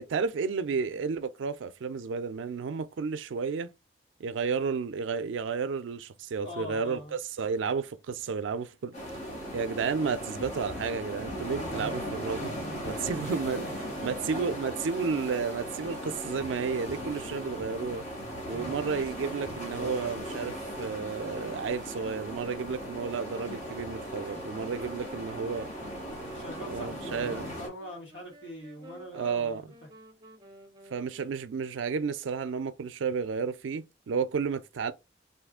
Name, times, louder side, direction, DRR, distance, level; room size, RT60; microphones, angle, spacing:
voice 1, 0.0-3.7 4.2-8.9 9.5-12.5 12.9-13.6 14.0-18.0 18.5-25.7 26.7-27.4 29.1-29.6 30.9-34.9, right 5 dB, 90° right, 0.4 m, -32 dB
voice 2, 6.3-7.1 11.2-12.0 12.6-13.0 13.5-14.1 18.5-18.7 26.3-29.7, left 1 dB, 75° left, 1.5 m, -43 dB
sound 1, 8.9-27.7, equal, 40° left, 1.2 m, -38 dB
sound 2, 23.1-31.6, right 1 dB, 20° right, 0.6 m, -52 dB
2.6 x 2.5 x 3.5 m
head